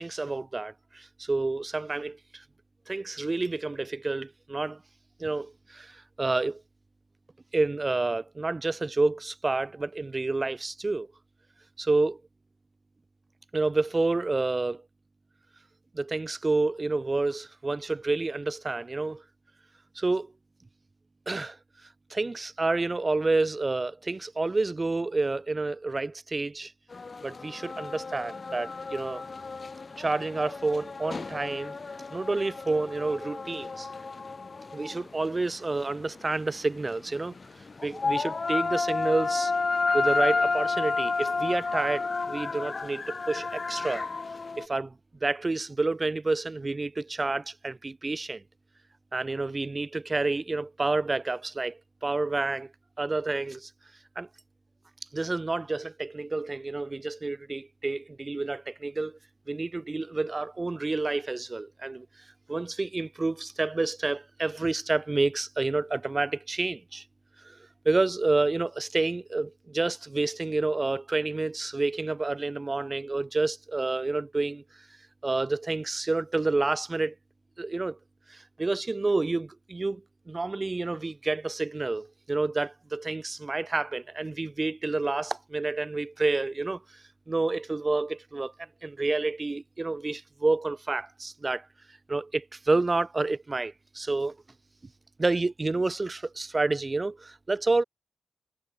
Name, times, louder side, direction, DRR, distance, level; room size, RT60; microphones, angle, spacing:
voice 1, 0.0-2.4 2.9-4.8 5.2-6.6 7.5-11.1 11.8-12.2 13.5-14.8 15.9-19.2 19.9-20.3 21.3-21.6 22.1-26.7 27.2-29.2 30.0-31.8 32.1-33.9 34.7-37.3 37.8-39.5 39.9-44.1 44.6-44.9 45.2-48.4 49.1-52.7 53.0-53.7 54.1-54.3 55.1-59.2 59.5-67.0 67.4-67.6 67.8-74.9 75.2-77.1 77.6-78.0 78.3-91.7 92.1-94.4 95.2-97.8, right 3 dB, 20° right, 6.5 m, -29 dB
sound 1, 26.9-44.7, left 4 dB, 30° left, 6.9 m, -31 dB
wide cardioid pair, 170°, 0 cm